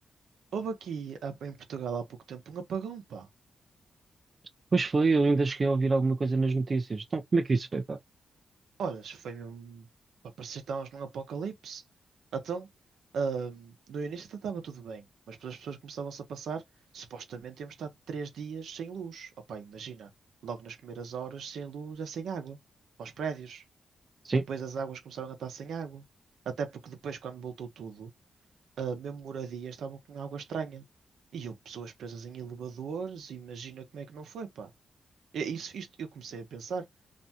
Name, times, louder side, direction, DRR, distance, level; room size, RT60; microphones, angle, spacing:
voice 1, 0.5-3.3 8.8-9.9 10.4-11.8 12.3-12.7 13.1-16.6 16.9-20.1 20.4-22.6 23.0-23.6 24.5-26.0 26.4-28.1 28.8-30.8 31.3-34.7 35.3-36.9, right 6 dB, 80° right, 0.7 m, -38 dB
voice 2, 4.7-8.0 24.2-24.4, right 3 dB, 45° right, 0.3 m, -26 dB
2.6 x 2.2 x 2.7 m
cardioid pair, 60°, 0 cm